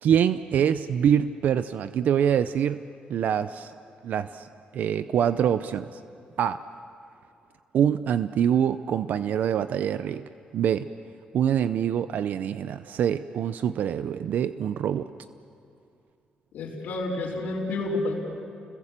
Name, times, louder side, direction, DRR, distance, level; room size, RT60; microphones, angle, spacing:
voice 1, 0.0-2.8 3.1-3.7 4.0-4.5 4.7-6.0 6.4-6.6 7.7-10.9 11.3-15.1, right 9 dB, 70° right, 12 dB, 0.6 m, -25 dB
voice 2, 16.5-18.1, left 2 dB, 85° left, -6 dB, 4.0 m, -29 dB
29.5 x 22.0 x 7.4 m, 2.5 s
cardioid pair, 115°, 3 cm